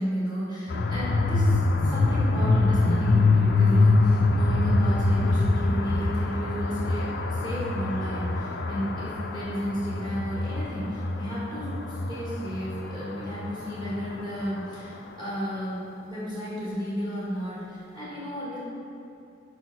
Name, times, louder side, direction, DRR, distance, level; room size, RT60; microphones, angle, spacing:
voice 1, 0.0-18.6, equal, 20° right, -10 dB, 1.8 m, -33 dB
sound 1, 0.7-14.6, left 2 dB, 50° left, 0.5 m, -24 dB
6.2 x 5.2 x 6.0 m, 2.6 s
head